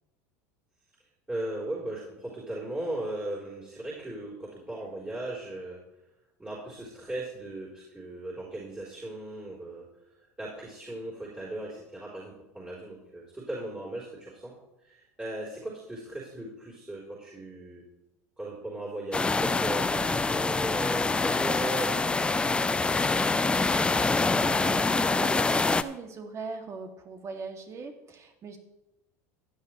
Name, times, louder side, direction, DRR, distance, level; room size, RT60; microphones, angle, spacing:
voice 1, 1.3-5.8 6.4-9.9 10.4-14.5 14.8-17.8 18.4-24.4, right 1 dB, 15° right, -6 dB, 3.8 m, -38 dB
sound 1, 19.1-25.8, left 3 dB, 15° left, 0.5 m, -25 dB
voice 2, 23.9-28.6, right 4 dB, 40° right, 4 dB, 2.1 m, -40 dB
15.5 x 10.5 x 3.1 m, 0.93 s
hypercardioid pair, 85°, 8 cm